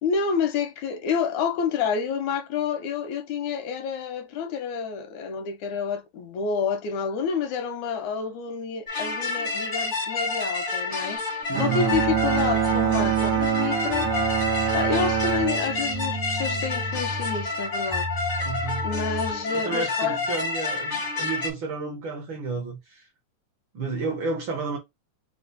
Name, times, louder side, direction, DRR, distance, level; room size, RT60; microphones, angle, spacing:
voice 1, 0.0-11.2 11.6-14.1 14.7-18.1 18.4-18.5 18.8-20.2, left 6 dB, 85° left, 2.1 m, -29 dB
sound 1, 8.9-21.5, left 3 dB, 60° left, 0.4 m, -29 dB
sound 2, 11.4-11.5 11.9-19.4, left 1 dB, 50° right, 0.4 m, -35 dB
voice 2, 11.5-11.9 18.4-18.9 19.5-23.1 23.7-24.8, right 4 dB, 70° right, 1.2 m, -31 dB
Bowed string instrument, 11.5-17.0, right 11 dB, 90° right, 2.2 m, -26 dB
5.2 x 2.0 x 3.8 m
omnidirectional pair, 3.3 m